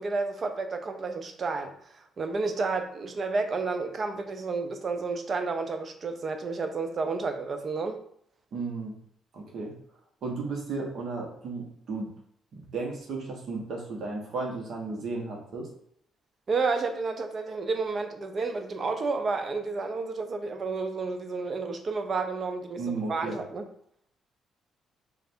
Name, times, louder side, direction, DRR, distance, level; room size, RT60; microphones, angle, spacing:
voice 1, 0.0-8.0 16.5-23.7, right 4 dB, 45° right, 7 dB, 0.5 m, -31 dB
voice 2, 8.5-8.9 9.3-9.7 10.2-12.1 12.5-15.7 22.8-23.4, right 3 dB, 65° right, -1 dB, 1.1 m, -34 dB
3.2 x 2.5 x 4.3 m, 0.69 s
cardioid pair, 90°, 0 cm